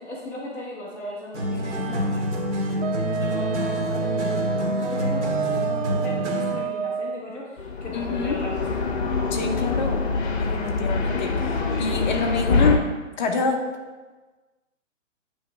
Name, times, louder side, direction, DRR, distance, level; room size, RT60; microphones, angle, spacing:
voice 1, 0.0-2.4 2.9-8.7, left 1 dB, 5° left, -7 dB, 0.6 m, -38 dB
sound 1, 1.3-6.7, equal, 60° right, 1.9 m, -27 dB
Wind instrument woodwind instrument, 2.8-7.2, right 5 dB, 75° right, 0.7 m, -29 dB
sound 2, 7.6-12.8, left 4 dB, 55° left, 1.1 m, -25 dB
voice 2, 7.9-8.4 9.3-10.0 10.4-12.8 13.2-13.6, left 4 dB, 35° left, 3 dB, 0.8 m, -26 dB
9.1 x 3.2 x 4.7 m, 1.3 s
hypercardioid pair, 135°, 38 cm